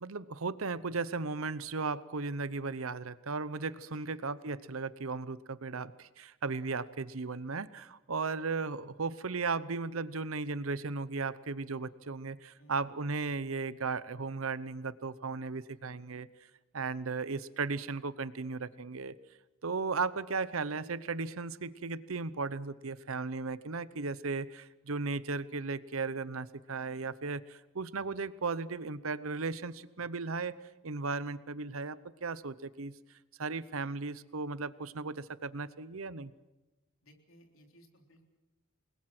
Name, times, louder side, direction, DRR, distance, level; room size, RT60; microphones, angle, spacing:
voice 1, 0.0-16.3 16.7-19.1 19.6-30.6 30.8-32.9 33.4-36.3, right 4 dB, 85° right, 16 dB, 0.9 m, -36 dB
voice 2, 37.0-38.2, right 1 dB, 75° left, 3 dB, 3.7 m, -60 dB
28.0 x 21.0 x 6.1 m, 1.1 s
head